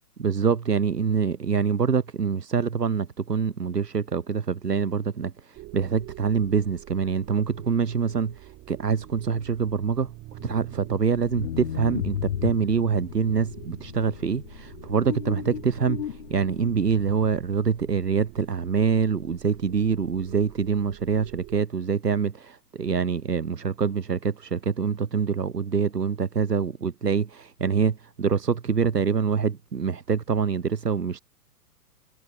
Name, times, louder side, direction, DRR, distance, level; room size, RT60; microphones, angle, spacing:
voice 1, 0.2-31.2, right 6 dB, 75° right, 1.2 m, -25 dB
sound 1, 5.5-21.6, right 18 dB, 25° right, 4.6 m, -46 dB
sound 2, 10.4-16.7, left 10 dB, 45° left, 0.5 m, -35 dB
figure-of-eight pair, 115°, 48 cm